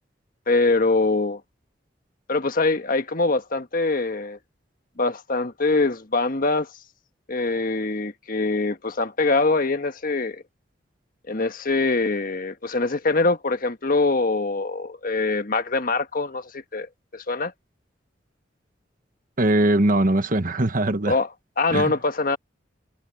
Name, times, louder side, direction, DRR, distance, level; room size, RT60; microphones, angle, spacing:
voice 1, 0.5-1.4 2.3-4.4 5.0-6.7 7.3-10.4 11.3-17.5 21.1-21.3 21.6-22.4, left 3 dB, 50° left, 1.4 m, -23 dB
voice 2, 19.4-21.2 21.7-21.9, right 1 dB, 50° right, 1.3 m, -21 dB
head